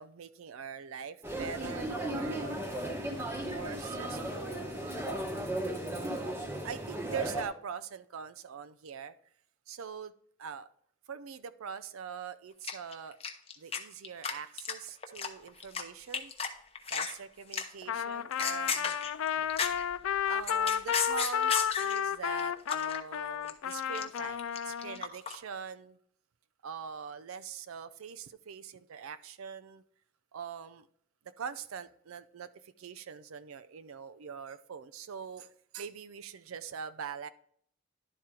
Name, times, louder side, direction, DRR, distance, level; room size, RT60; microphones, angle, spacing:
voice 1, 0.0-2.6 3.4-4.8 6.6-9.1 9.7-10.1 10.4-10.7 11.1-13.2 13.6-16.3 16.9-19.0 19.2-19.9 20.2-26.0 26.6-29.8 30.3-30.9 31.4-37.3, right 6 dB, 90° right, 13 dB, 0.4 m, -43 dB
sound 1, 1.2-7.5, right 1 dB, 10° right, 0.9 m, -36 dB
sound 2, 12.6-13.8 14.0-14.3 14.6-15.8 16.1-16.5 16.8-17.1 17.5-17.8 18.2-19.9 20.3-22.0 22.4-23.0 23.3-25.4, left 6 dB, 30° left, 0.7 m, -33 dB
Trumpet, 17.9-25.0, left 8 dB, 85° left, 0.4 m, -32 dB
11.0 x 4.3 x 3.7 m, 0.65 s
head